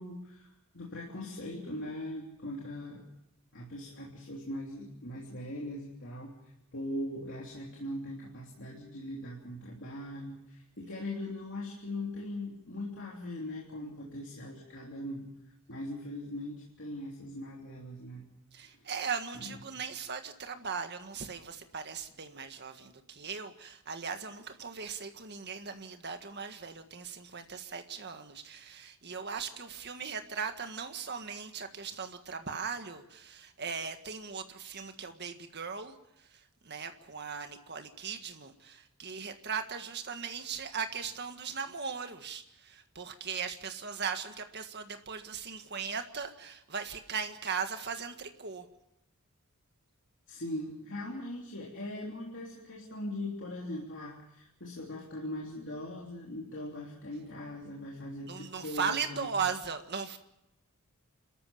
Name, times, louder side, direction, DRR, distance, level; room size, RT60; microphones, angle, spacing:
voice 1, 0.0-3.0 3.5-6.3 6.7-15.3 15.7-18.3 18.7-18.9 19.3-19.6 50.3-59.3, left 1 dB, 60° left, -3 dB, 3.3 m, -40 dB
voice 2, 18.5-48.7 58.3-60.2, right 6 dB, 50° right, 7 dB, 1.7 m, -38 dB
29.5 x 14.0 x 7.2 m, 0.84 s
head